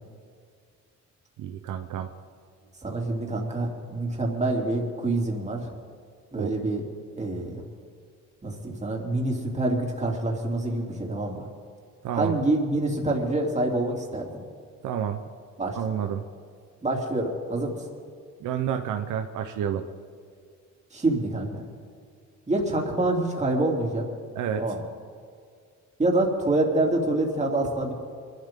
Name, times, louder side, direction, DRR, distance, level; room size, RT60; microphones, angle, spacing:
voice 1, 1.4-2.1 6.4-6.5 12.0-12.4 14.8-15.2 15.8-16.2 18.4-19.8 24.3-24.6, right 9 dB, 80° right, 6 dB, 0.9 m, -29 dB
voice 2, 2.8-5.7 6.3-6.8 7.2-7.6 8.4-11.5 12.1-14.4 15.6-15.8 16.8-17.8 20.9-21.6 22.5-24.0 24.6-24.8 26.0-27.9, right 2 dB, 25° right, 0 dB, 3.1 m, -26 dB
23.0 x 13.0 x 3.8 m, 2.1 s
cardioid pair, 90°, 30 cm